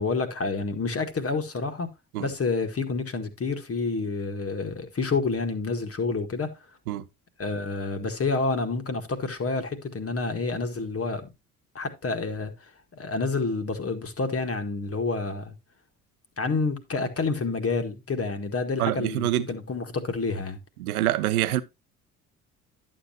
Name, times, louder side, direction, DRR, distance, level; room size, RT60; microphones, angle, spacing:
voice 1, 0.0-1.9 2.2-6.5 7.4-11.3 11.8-15.5 16.4-20.6, left 4 dB, 30° left, 1.8 m, -29 dB
voice 2, 18.8-19.5 20.8-21.6, right 14 dB, 75° right, 0.8 m, -25 dB
11.0 x 7.8 x 2.8 m
figure-of-eight pair, 55°, 44 cm